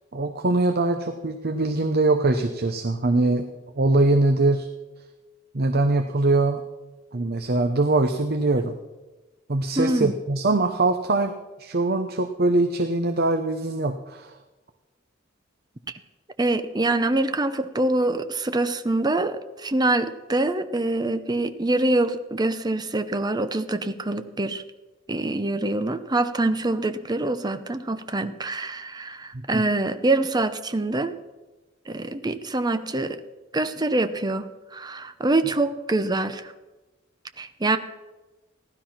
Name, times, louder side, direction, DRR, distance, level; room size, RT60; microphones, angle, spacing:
voice 1, 0.1-3.5 3.7-4.7 5.5-6.6 7.1-8.8 9.5-11.3 11.6-14.4 29.3-29.6, right 2 dB, 55° right, 7 dB, 0.9 m, -22 dB
voice 2, 9.8-10.1 16.4-24.6 25.1-31.1 31.9-33.2 33.5-36.5 37.4-37.8, right 2 dB, 20° right, 10 dB, 0.8 m, -25 dB
15.5 x 12.0 x 5.8 m, 1.1 s
head